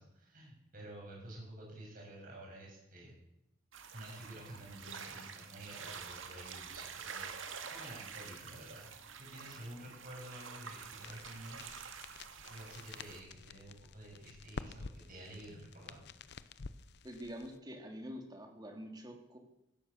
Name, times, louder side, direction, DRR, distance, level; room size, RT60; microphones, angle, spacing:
voice 1, 0.0-3.1 3.9-8.9 9.2-11.6 12.5-16.0, right 1 dB, 45° right, -2 dB, 7.4 m, -50 dB
sound 1, 3.7-13.2, right 6 dB, 80° right, 1.9 m, -48 dB
sound 2, 11.0-17.6, left 4 dB, 55° left, 0.7 m, -50 dB
voice 2, 17.0-19.4, equal, 20° right, 4 dB, 2.6 m, -46 dB
16.5 x 12.5 x 6.8 m, 0.86 s
head